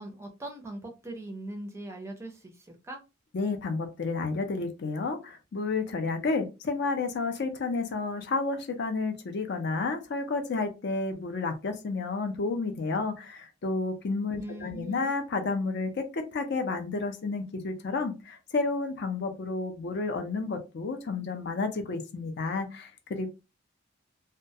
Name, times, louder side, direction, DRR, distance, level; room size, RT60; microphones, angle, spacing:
voice 1, 0.0-2.5 2.9-3.0 14.3-15.1, right 1 dB, 15° right, 3 dB, 0.4 m, -40 dB
voice 2, 3.3-23.3, left 3 dB, 55° left, 6 dB, 0.4 m, -31 dB
2.2 x 2.1 x 2.6 m, 0.28 s
head